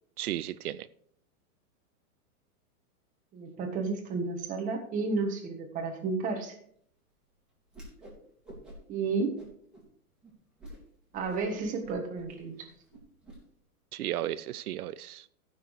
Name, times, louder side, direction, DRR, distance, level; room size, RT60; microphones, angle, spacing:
voice 1, 0.2-0.9 13.9-15.3, right 13 dB, 80° right, 0.6 m, -34 dB
voice 2, 3.3-6.5 8.9-9.4 11.1-12.5, right 4 dB, 15° right, 1.5 m, -32 dB
Whoosh swoosh swish, 7.7-8.2 8.4-9.0 9.4-9.8 10.2-10.3 10.6-10.8 11.1-13.4, equal, ahead, 2.7 m, -49 dB
13.5 x 6.3 x 4.7 m
supercardioid pair, 165°, 44 cm